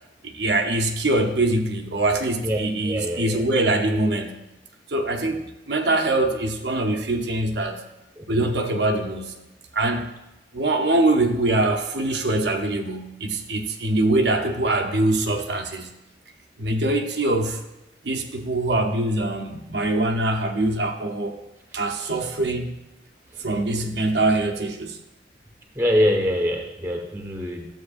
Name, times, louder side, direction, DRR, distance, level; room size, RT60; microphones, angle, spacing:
voice 1, 0.2-4.4 4.9-7.8 8.3-9.3 9.7-10.1 10.5-15.9 16.6-17.6 18.0-21.4 21.7-22.8 23.4-25.0, right 2 dB, 75° right, 3 dB, 0.8 m, -23 dB
voice 2, 2.8-3.4 8.2-8.5 22.0-22.3 23.3-23.4 25.7-27.7, equal, 15° right, 1 dB, 1.3 m, -24 dB
12.0 x 7.6 x 2.5 m, 0.97 s
head